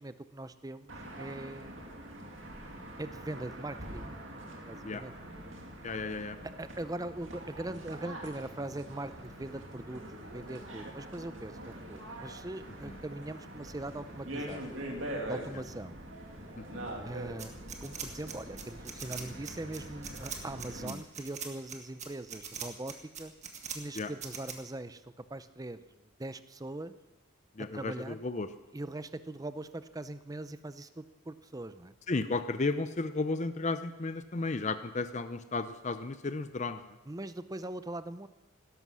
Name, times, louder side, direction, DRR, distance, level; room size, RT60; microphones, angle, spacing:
voice 1, 0.0-1.7 3.0-4.1 4.7-5.1 6.6-14.8 15.3-16.0 17.0-17.6 17.8-23.3 23.7-25.0 25.3-25.8 26.2-26.9 27.7-28.2 28.7-31.9 37.1-38.3, right 2 dB, 15° right, 13 dB, 0.5 m, -41 dB
sound 1, 0.9-20.9, right 1 dB, 60° right, 2.4 m, -44 dB
voice 2, 5.8-6.4 12.8-13.0 16.6-16.9 20.8-21.0 24.0-24.1 27.6-28.5 32.1-36.8, left 3 dB, 35° left, 10 dB, 0.6 m, -34 dB
sound 2, 17.4-24.5, right 7 dB, 35° right, 1.7 m, -41 dB
17.0 x 13.0 x 6.2 m, 0.99 s
head